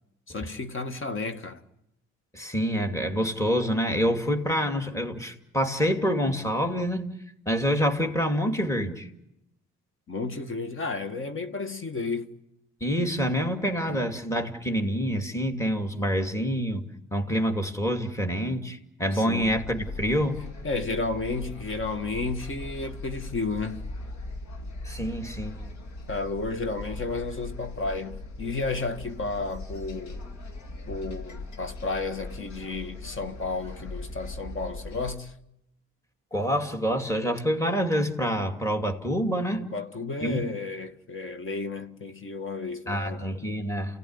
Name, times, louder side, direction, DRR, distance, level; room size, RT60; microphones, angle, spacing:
voice 1, 0.3-1.6 10.1-12.3 13.9-14.0 19.1-19.5 20.6-23.9 26.1-30.2 30.9-35.3 39.6-43.3, left 3 dB, 40° left, 1.9 m, -32 dB
voice 2, 2.3-7.0 7.5-9.1 12.8-20.4 24.8-25.6 36.3-39.6 40.2-40.4 42.9-44.0, equal, 10° left, 2.6 m, -27 dB
sound 1, 19.4-35.2, left 2 dB, 65° left, 2.4 m, -39 dB
29.5 x 17.0 x 9.8 m
cardioid pair, 90°, 30 cm